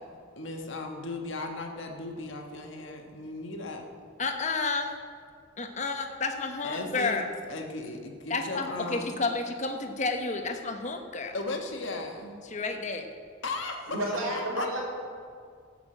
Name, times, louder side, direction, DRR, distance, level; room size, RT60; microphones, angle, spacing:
voice 1, 0.4-3.9 6.6-9.2 11.3-12.3 13.4-14.0 14.5-14.7, left 2 dB, 60° left, 2 dB, 1.5 m, -36 dB
voice 2, 4.2-5.0 5.6-7.3 8.3-11.3 12.4-13.1, left 3 dB, 35° left, 5 dB, 1.0 m, -31 dB
voice 3, 13.9-14.8, right 1 dB, 70° right, -4 dB, 3.7 m, -30 dB
14.5 x 6.8 x 7.7 m, 2.1 s
head